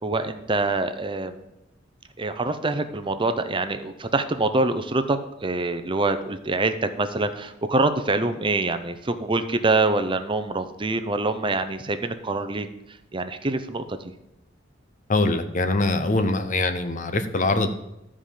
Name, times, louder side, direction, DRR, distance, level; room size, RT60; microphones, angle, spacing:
voice 1, 0.0-1.4 2.2-12.7 13.1-14.1, right 2 dB, 25° right, 9 dB, 0.7 m, -25 dB
voice 2, 15.1-17.7, left 2 dB, 40° left, 9 dB, 0.9 m, -23 dB
12.5 x 5.0 x 7.4 m, 0.88 s
head